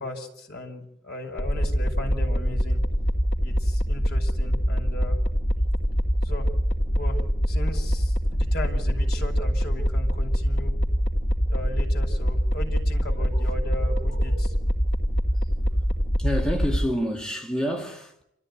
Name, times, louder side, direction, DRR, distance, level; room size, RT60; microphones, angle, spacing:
voice 1, 0.0-2.8 3.4-5.2 6.2-6.5 6.9-7.2 7.5-10.7 11.5-14.5, left 1 dB, 55° left, 5.1 m, -37 dB
sound 1, 1.4-16.9, equal, 80° left, 2.5 m, -24 dB
voice 2, 13.1-14.5 15.4-15.7 16.2-18.2, equal, 5° left, 2.0 m, -31 dB
28.0 x 14.0 x 9.7 m
head